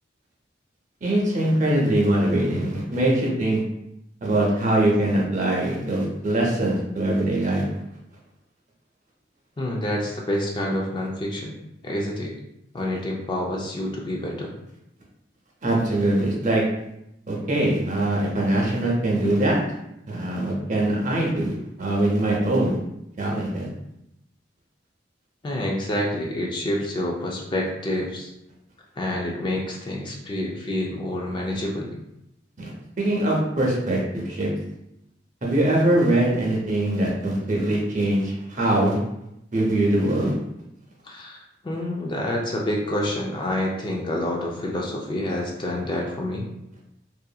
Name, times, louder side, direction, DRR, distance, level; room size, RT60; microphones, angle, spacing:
voice 1, 1.0-3.6 4.2-7.7 15.6-16.6 17.3-19.6 20.1-21.5 21.8-22.7 23.2-23.7 32.6-32.7 33.0-34.5 35.4-39.0 39.5-40.3, right 1 dB, 40° right, -3 dB, 0.7 m, -22 dB
voice 2, 9.6-11.5 11.8-12.3 12.7-14.5 25.4-28.3 29.0-31.9 41.0-46.5, left 1 dB, 25° left, -1 dB, 0.3 m, -28 dB
2.7 x 2.5 x 2.3 m, 0.84 s
head